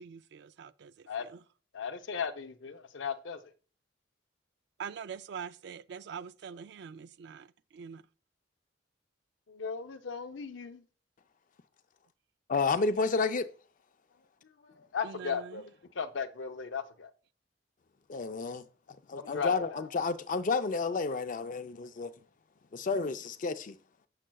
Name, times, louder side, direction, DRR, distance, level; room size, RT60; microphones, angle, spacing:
voice 1, 0.0-1.4 4.8-7.5 7.7-8.0 15.0-15.6, right 6 dB, 65° right, 0.3 m, -44 dB
voice 2, 1.7-3.4 9.5-10.8 14.8-15.7 16.0-17.1 19.1-19.8, left 6 dB, 90° left, 0.6 m, -36 dB
voice 3, 12.5-13.5 18.1-18.6 19.1-22.1 22.7-23.8, left 4 dB, 45° left, 0.5 m, -30 dB
7.3 x 6.5 x 2.3 m
head